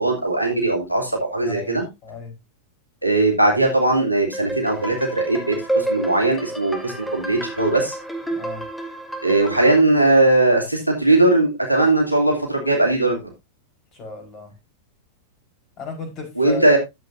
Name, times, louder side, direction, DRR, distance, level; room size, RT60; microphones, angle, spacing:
voice 1, 0.0-1.8 3.0-8.0 9.2-13.2 16.4-16.8, right 2 dB, 90° left, 1 dB, 2.6 m, -19 dB
voice 2, 1.4-2.4 8.3-8.6 13.9-14.5 15.8-16.8, left 3 dB, 35° left, 3 dB, 4.4 m, -35 dB
sound 1, 4.3-9.8, right 2 dB, ahead, 2.1 m, -29 dB
13.0 x 7.7 x 2.6 m, 0.23 s
figure-of-eight pair, 90°, 0 cm